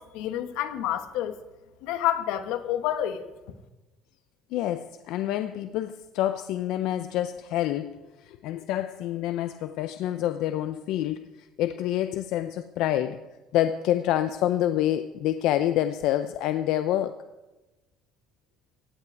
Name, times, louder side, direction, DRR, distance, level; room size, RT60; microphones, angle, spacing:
voice 1, 0.0-1.4 1.8-3.3, left 11 dB, 85° left, 10 dB, 1.1 m, -29 dB
voice 2, 4.5-13.2 13.5-17.1, left 12 dB, 65° left, 10 dB, 0.5 m, -27 dB
16.0 x 5.9 x 9.3 m, 1.1 s
cardioid pair, 175°, 0 cm